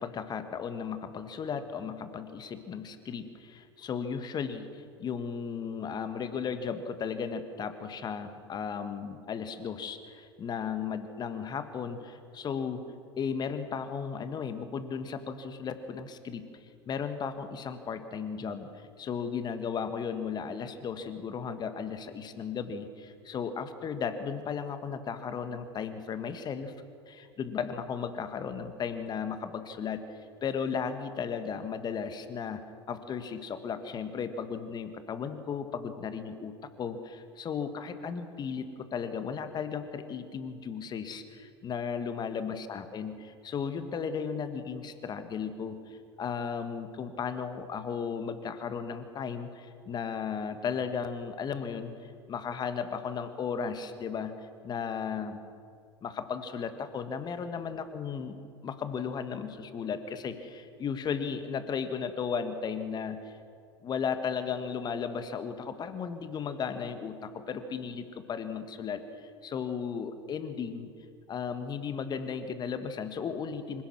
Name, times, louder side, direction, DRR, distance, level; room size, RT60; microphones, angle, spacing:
voice 1, 0.0-12.8 13.2-16.5 16.9-26.7 27.1-30.0 30.4-32.6 32.9-43.1 43.4-55.4 56.0-58.4 58.6-63.4 63.8-70.9 71.3-73.8, left 6 dB, 30° left, 9 dB, 1.7 m, -35 dB
25.5 x 17.0 x 6.4 m, 2.2 s
figure-of-eight pair, 75°, 14 cm